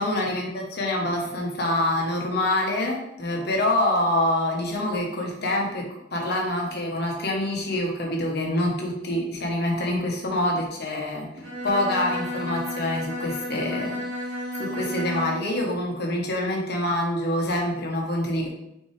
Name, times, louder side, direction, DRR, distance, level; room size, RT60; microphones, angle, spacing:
voice 1, 0.0-5.8 6.1-11.3 11.6-18.5, left 1 dB, 55° left, 0 dB, 1.3 m, -26 dB
Bowed string instrument, 11.4-15.6, equal, 85° right, 1.3 m, -32 dB
6.1 x 4.5 x 3.4 m, 0.81 s
head